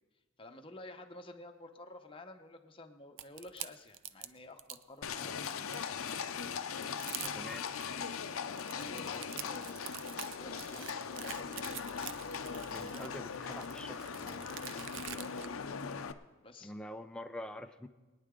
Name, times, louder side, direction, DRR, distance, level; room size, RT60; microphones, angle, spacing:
voice 1, 0.4-6.1 7.2-7.5 8.7-11.5 14.6-15.4 16.4-16.7, left 2 dB, 25° left, 5 dB, 0.9 m, -52 dB
sound 1, 3.2-4.8 5.3-6.1 6.6-6.7 6.9-7.9 8.4-15.5, right 11 dB, 60° right, 0.5 m, -46 dB
Livestock farm animals working animals, 5.0-16.1, left 6 dB, 80° left, 0.6 m, -40 dB
sound 2, 8.6-9.7 10.9-12.6 13.9-14.9, right 2 dB, 15° right, 2.1 m, -61 dB
voice 2, 12.7-14.1 16.6-17.9, left 1 dB, 5° left, 7 dB, 0.5 m, -45 dB
23.5 x 9.8 x 3.8 m, 1.2 s
head